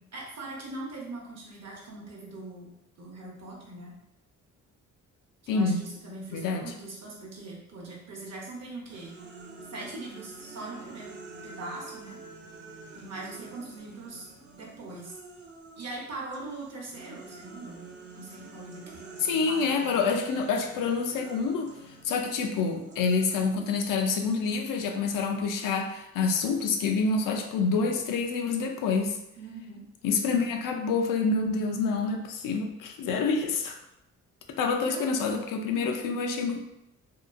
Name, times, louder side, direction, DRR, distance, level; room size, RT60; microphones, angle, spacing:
voice 1, 0.1-2.7 3.0-3.9 5.4-9.2 9.6-11.1 11.4-12.2 12.9-14.3 14.5-15.2 15.8-17.9 18.1-19.0 19.3-19.8 29.4-29.8 34.8-35.1, right 2 dB, 55° right, -2 dB, 0.9 m, -41 dB
voice 2, 5.5-5.8 6.3-6.6 19.2-21.7 22.0-29.2 30.0-33.8 34.6-36.6, left 4 dB, 85° left, 3 dB, 0.5 m, -27 dB
sound 1, 8.9-16.0 16.3-24.9, right 4 dB, 35° right, 0.5 m, -48 dB
2.7 x 2.3 x 2.5 m, 0.83 s
cardioid pair, 105°, 32 cm